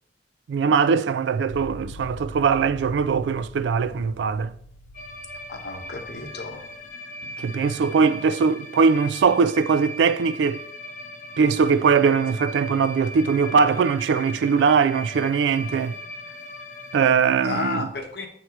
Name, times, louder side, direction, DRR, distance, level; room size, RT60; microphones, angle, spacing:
voice 1, 0.5-4.5 7.4-10.6 11.4-16.0 16.9-17.9, right 5 dB, 80° right, 0.3 m, -21 dB
sound 1, 1.5-6.8, left 1 dB, 90° left, 0.5 m, -43 dB
sound 2, 4.9-17.1, left 1 dB, 45° left, 0.6 m, -39 dB
voice 2, 5.5-6.7 7.4-7.6 17.4-18.3, left 3 dB, 60° left, 1.0 m, -32 dB
7.7 x 2.9 x 4.6 m
head